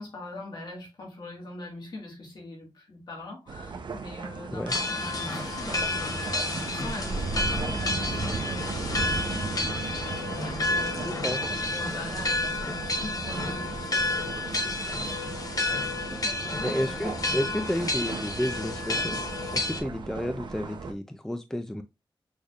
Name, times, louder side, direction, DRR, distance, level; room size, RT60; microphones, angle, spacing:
voice 1, 0.0-8.9 9.1-10.3 10.6-15.9 16.2-17.1, left 2 dB, 60° left, 2.2 m, -42 dB
sound 1, 3.5-20.9, right 4 dB, 65° right, 0.8 m, -36 dB
sound 2, 4.7-19.8, left 2 dB, 45° left, 1.0 m, -31 dB
sound 3, 5.0-10.2, right 2 dB, 90° right, 1.6 m, -41 dB
voice 2, 11.0-11.4 16.6-19.2 19.5-21.8, left 1 dB, 5° left, 0.4 m, -31 dB
6.3 x 3.4 x 2.4 m
wide cardioid pair, 145°, 9 cm